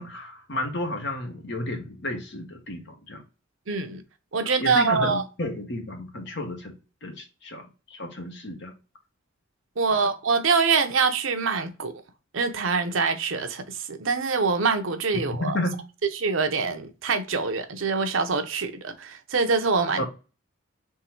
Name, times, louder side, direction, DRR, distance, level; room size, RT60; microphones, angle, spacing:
voice 1, 0.0-3.2 4.6-6.7 7.0-8.7 15.2-15.8 20.0-20.1, left 1 dB, 60° left, 1.2 m, -32 dB
voice 2, 3.7-4.0 4.3-5.2 9.8-11.9 12.3-13.6 13.9-15.6 16.1-20.0, right 4 dB, 75° right, 0.8 m, -24 dB
3.7 x 3.1 x 4.4 m
head